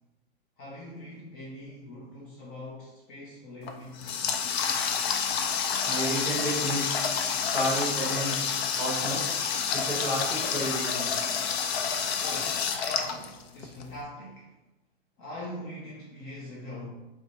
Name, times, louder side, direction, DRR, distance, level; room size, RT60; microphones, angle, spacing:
voice 1, 0.6-4.0 12.2-14.5 15.2-16.9, left 1 dB, 30° left, -4 dB, 0.6 m, -42 dB
Water tap faucet, 3.6-13.8, left 6 dB, 75° left, 0.5 m, -29 dB
voice 2, 5.8-6.9 7.5-9.3 9.7-11.1, right 1 dB, 10° right, -6 dB, 1.0 m, -31 dB
4.4 x 2.1 x 2.8 m, 1.0 s
supercardioid pair, 145°, 31 cm